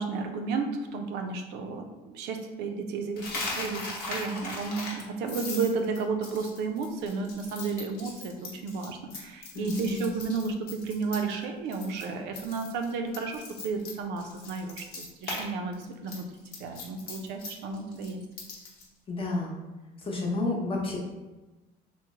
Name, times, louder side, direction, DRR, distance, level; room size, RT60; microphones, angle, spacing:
voice 1, 0.0-3.3 3.6-16.2 16.5-18.2, right 4 dB, 90° right, 4 dB, 0.5 m, -32 dB
Coin (dropping), 3.2-11.4 11.7-12.0 12.3-15.5 15.7-18.9, left 3 dB, 70° left, 0.9 m, -39 dB
voice 2, 9.5-10.0 19.1-19.5 20.1-21.0, left 3 dB, 30° left, -2 dB, 0.8 m, -30 dB
3.1 x 2.1 x 3.5 m, 1.1 s
cardioid pair, 110°, 17 cm